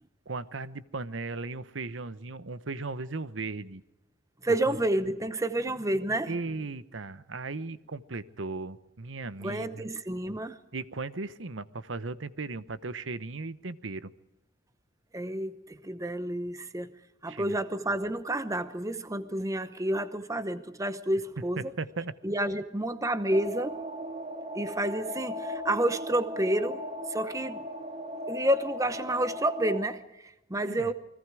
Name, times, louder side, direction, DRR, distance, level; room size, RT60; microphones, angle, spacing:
voice 1, 0.3-3.8 4.7-4.8 6.3-9.9 10.7-14.1 17.2-17.6 21.6-22.1 30.6-30.9, right 3 dB, 90° right, 14 dB, 1.0 m, -37 dB
voice 2, 4.4-6.4 9.4-10.6 15.1-16.9 17.2-21.7 22.2-23.8 24.5-26.8 27.1-27.6 28.3-30.9, right 1 dB, 15° right, 12 dB, 0.9 m, -30 dB
sound 1, 23.3-29.8, left 1 dB, 40° right, 2.0 m, -37 dB
29.0 x 21.0 x 4.9 m, 0.93 s
head